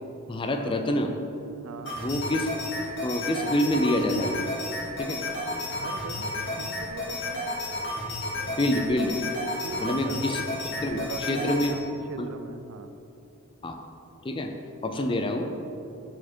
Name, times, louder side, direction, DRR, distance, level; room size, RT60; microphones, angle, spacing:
voice 1, 0.3-1.1 2.0-2.5 3.0-4.4 5.0-5.2 8.6-9.2 9.8-10.4 10.8-11.7 12.2-12.3 13.6-13.8 14.2-14.5 14.8-15.5, left 1 dB, 25° left, 5 dB, 0.4 m, -26 dB
sound 1, 1.9-11.7, left 1 dB, 60° left, 1.6 m, -32 dB
voice 2, 5.7-7.4 8.4-8.6 9.6-10.2 10.9-12.9 14.9-15.2, right 4 dB, 90° right, 9 dB, 0.4 m, -40 dB
7.1 x 4.4 x 4.4 m, 2.8 s
head